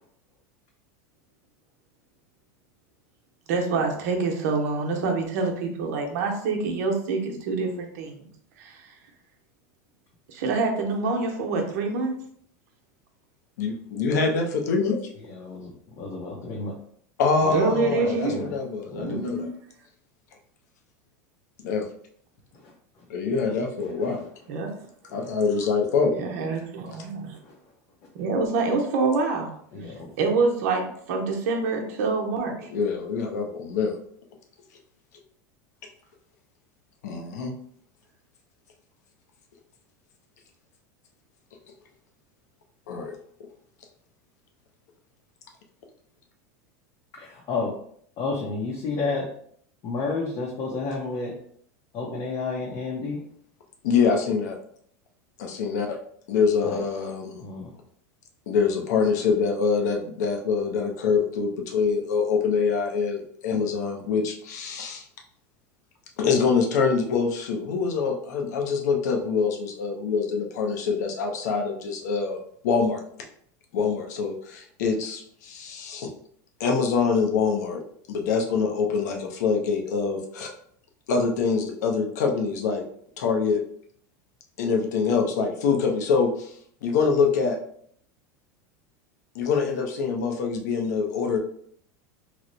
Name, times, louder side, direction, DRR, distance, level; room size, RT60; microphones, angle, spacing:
voice 1, 3.5-8.3 8.6-8.9 10.3-12.1 17.5-18.5 19.0-19.5 24.5-24.7 26.1-27.4 28.1-29.5 30.2-32.7, right 4 dB, 70° right, 2 dB, 0.8 m, -26 dB
voice 2, 13.6-15.0 17.2-19.5 21.6-21.8 23.1-24.2 25.1-26.1 32.7-34.0 37.0-37.5 42.9-43.2 53.8-54.6 55.4-56.0 56.3-57.4 58.5-65.0 66.2-73.0 73.7-76.1 76.6-77.8 78.1-80.5 81.1-82.9 83.2-83.6 84.6-86.5 86.8-87.6 89.3-91.4, left 5 dB, 80° left, 2 dB, 0.7 m, -25 dB
voice 3, 15.2-16.8 17.4-18.5 18.9-19.2 22.5-23.0 23.8-24.3 25.1-25.3 27.4-27.5 29.7-30.1 47.1-47.7 48.2-49.3 49.8-51.3 51.9-53.2 56.6-56.8 57.4-57.7, left 3 dB, 40° left, -3 dB, 0.7 m, -32 dB
3.0 x 2.1 x 3.8 m, 0.63 s
supercardioid pair, 150°, 9 cm